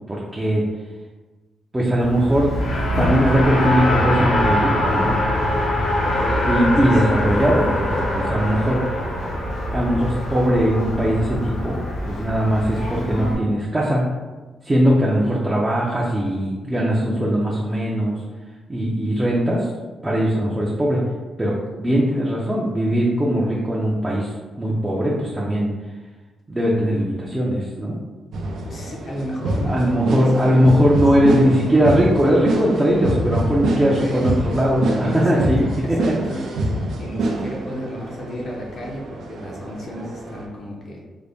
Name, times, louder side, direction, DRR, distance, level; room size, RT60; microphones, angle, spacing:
voice 1, 0.1-0.6 1.7-2.5 3.0-5.2 6.4-8.8 9.3-9.4 9.7-11.8 12.1-14.1 14.6-18.2 18.7-19.7 20.0-21.1 21.4-24.3 24.6-25.7 26.5-28.0 29.7-36.1, equal, 10° right, -4 dB, 0.4 m, -20 dB
Race car auto racing, 2.0-13.3, left 1 dB, 85° left, 0.8 m, -23 dB
voice 2, 6.0-7.3 15.2-15.4 28.7-31.0 33.7-34.5 35.0-36.4 37.0-41.0, equal, 45° left, -3 dB, 0.6 m, -32 dB
sound 1, 28.3-40.5, right 2 dB, 75° right, 0.5 m, -26 dB
3.8 x 2.1 x 3.4 m, 1.3 s
wide cardioid pair, 150°, 0 cm